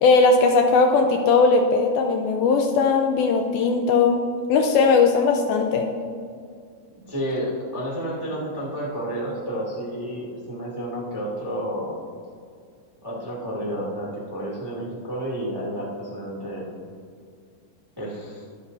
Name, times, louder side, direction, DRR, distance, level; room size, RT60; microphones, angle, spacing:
voice 1, 0.0-4.2 4.5-5.9, left 4 dB, 85° left, 3 dB, 2.2 m, -18 dB
voice 2, 7.1-12.0 13.0-16.7 18.0-18.4, equal, 15° right, -5 dB, 0.9 m, -30 dB
22.0 x 8.2 x 2.7 m, 2.2 s
omnidirectional pair, 5.0 m